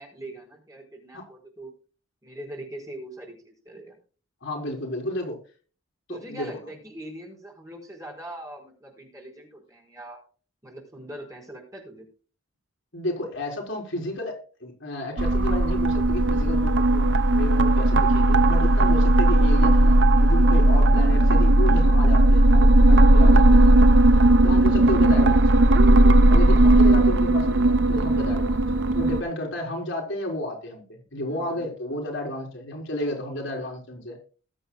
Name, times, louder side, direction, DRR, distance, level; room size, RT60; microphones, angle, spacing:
voice 1, 0.0-1.7 2.2-4.0 6.1-10.2 10.6-12.1 29.4-29.6 31.2-31.6, right 1 dB, 15° right, 1 dB, 4.7 m, -42 dB
voice 2, 4.4-5.4 6.1-6.6 12.9-23.8 24.4-25.7 26.3-34.2, left 1 dB, 60° left, 1 dB, 4.2 m, -32 dB
sound 1, 15.2-29.2, right 1 dB, 60° right, 0.7 m, -17 dB
20.5 x 7.9 x 2.3 m, 0.37 s
head